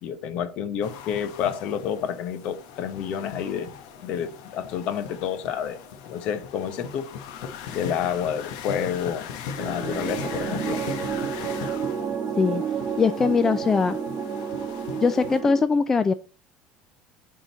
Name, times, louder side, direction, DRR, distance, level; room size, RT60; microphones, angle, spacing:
voice 1, 0.0-3.7 4.0-7.2 7.7-9.3 9.6-10.8, left 8 dB, 55° left, 0.9 m, -29 dB
sound 1, 0.8-15.4, left 7 dB, 80° left, 1.1 m, -39 dB
sound 2, 9.6-15.6, right 7 dB, 25° right, 1.5 m, -30 dB
voice 2, 13.0-14.0 15.0-16.1, left 5 dB, 20° left, 0.3 m, -21 dB
10.5 x 3.9 x 4.0 m
cardioid pair, 150°, 2 cm